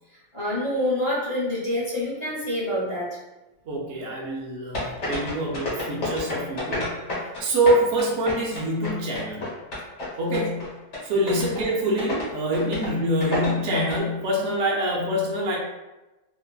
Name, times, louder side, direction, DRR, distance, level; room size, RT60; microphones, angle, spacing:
voice 1, 0.3-3.1 10.2-10.4 11.1-11.4, left 1 dB, 35° left, -8 dB, 0.5 m, -27 dB
voice 2, 3.7-9.4 10.2-10.7 11.0-15.6, right 1 dB, 65° right, -3 dB, 0.6 m, -25 dB
sound 1, 4.7-7.4 7.7-10.1 10.3-10.7 10.9-11.0 11.3-11.6 12.0-12.2 12.5-12.9 13.2-14.0, left 2 dB, 50° left, 1.0 m, -29 dB
2.9 x 2.4 x 2.2 m, 1.1 s
omnidirectional pair, 1.8 m